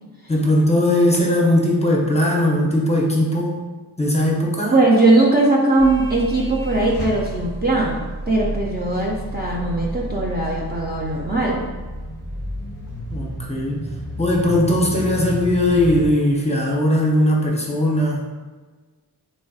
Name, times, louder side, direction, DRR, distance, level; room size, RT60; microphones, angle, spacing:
voice 1, 0.3-3.6 4.0-4.7 13.1-13.8 14.2-18.2, left 1 dB, 15° left, -3 dB, 0.7 m, -19 dB
voice 2, 4.7-11.7, right 2 dB, 25° right, -4 dB, 0.5 m, -19 dB
sound 1, 5.8-16.1, right 1 dB, 75° right, 1.5 m, -31 dB
4.1 x 3.1 x 2.3 m, 1.3 s
cardioid pair, 55°, 41 cm